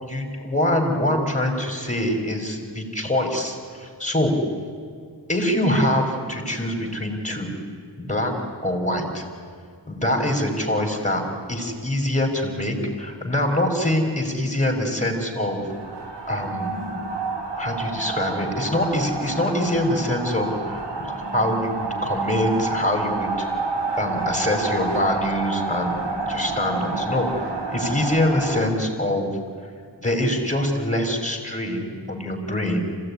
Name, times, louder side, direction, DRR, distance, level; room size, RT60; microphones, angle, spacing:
voice 1, 0.0-4.3 5.3-7.5 8.0-8.3 8.6-9.2 9.9-11.2 11.5-15.6 16.3-16.8 17.6-23.5 24.0-26.0 26.3-27.3 27.7-29.3 30.0-32.8, left 1 dB, 15° left, 2 dB, 5.2 m, -24 dB
sound 1, 15.6-28.6, right 3 dB, 75° right, 2.8 m, -29 dB
26.0 x 17.0 x 9.9 m, 2.1 s
wide cardioid pair, 50°, 42 cm